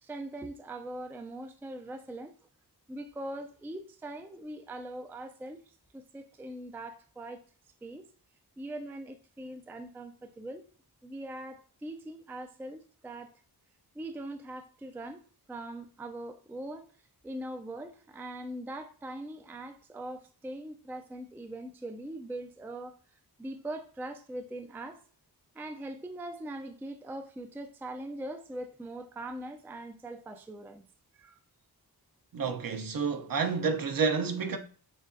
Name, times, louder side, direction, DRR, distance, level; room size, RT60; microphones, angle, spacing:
voice 1, 0.0-2.4 2.9-7.4 7.8-8.1 8.6-10.7 11.0-13.4 13.9-16.9 17.2-23.0 23.4-25.0 25.5-30.9 31.1-31.4, right 1 dB, 5° right, 0.3 m, -41 dB
voice 2, 32.3-34.6, right 5 dB, 60° right, 0.6 m, -29 dB
6.4 x 2.3 x 2.6 m
wide cardioid pair, 95°, 39 cm